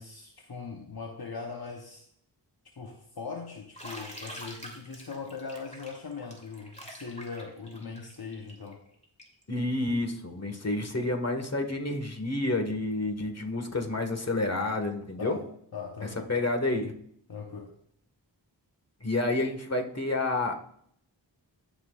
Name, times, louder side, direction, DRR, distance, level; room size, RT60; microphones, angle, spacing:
voice 1, 0.0-2.0 2.8-8.8 15.2-15.5 15.7-16.4 17.3-17.7, left 5 dB, 55° left, 2 dB, 1.1 m, -40 dB
Bathtub (filling or washing), 3.7-9.4, equal, 15° left, 2.7 m, -45 dB
voice 2, 9.5-15.4 16.3-16.9 19.0-20.6, left 2 dB, 35° left, 5 dB, 1.8 m, -29 dB
15.5 x 6.1 x 2.5 m, 0.66 s
cardioid pair, 45°, 44 cm